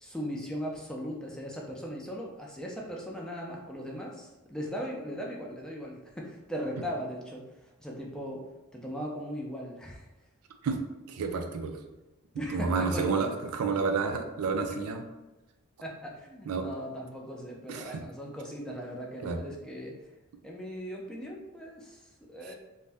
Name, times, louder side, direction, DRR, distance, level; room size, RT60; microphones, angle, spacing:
voice 1, 0.0-7.4 7.8-8.4 8.7-10.1 12.4-13.3 14.7-14.8 15.8-20.0 20.4-22.5, equal, 5° left, -2 dB, 0.4 m, -38 dB
voice 2, 11.1-11.8 12.5-15.0 16.5-16.7 17.7-17.9 19.2-19.4, right 4 dB, 85° right, 5 dB, 0.4 m, -30 dB
2.5 x 2.1 x 3.3 m, 1.0 s
head